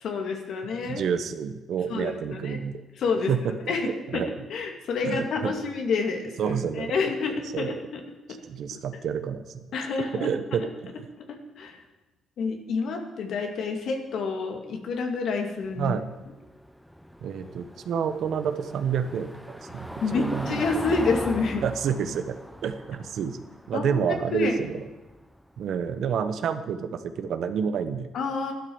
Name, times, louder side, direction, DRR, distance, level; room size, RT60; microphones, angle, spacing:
voice 1, 0.0-1.0 1.9-2.6 3.0-3.3 3.7-8.0 8.3-8.4 9.7-10.3 10.6-10.7 11.2-11.8 12.4-15.9 20.0-21.6 23.7-24.7 28.1-28.5, left 4 dB, 70° left, 3 dB, 2.5 m, -29 dB
voice 2, 0.8-2.8 3.3-3.5 4.1-4.3 5.0-5.5 6.4-6.9 7.5-7.7 8.5-9.6 10.1-11.1 15.8-16.1 17.2-20.6 21.6-22.4 22.6-23.4 23.7-24.7 25.6-28.1, right 7 dB, 70° right, 10 dB, 1.2 m, -29 dB
Car passing by / Engine, 15.6-26.3, equal, ahead, 0.8 m, -39 dB
12.5 x 12.0 x 7.2 m, 1.1 s
cardioid pair, 90°, 0 cm